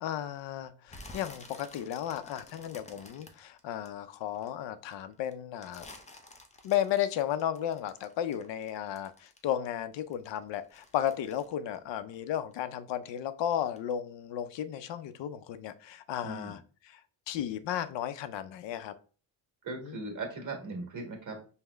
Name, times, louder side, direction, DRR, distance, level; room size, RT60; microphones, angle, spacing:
voice 1, 0.0-5.9 6.6-16.6 16.8-17.0 17.3-18.9 19.8-20.0, left 10 dB, 70° left, 12 dB, 0.6 m, -34 dB
sound 1, 0.9-4.5 4.9-9.7 9.9-12.7 12.9-13.3 13.8-13.9, left 2 dB, 15° left, 0.5 m, -51 dB
voice 2, 16.2-16.6 19.6-21.5, right 3 dB, 40° right, 2 dB, 1.5 m, -39 dB
5.4 x 2.1 x 3.4 m, 0.39 s
cardioid pair, 115°, 44 cm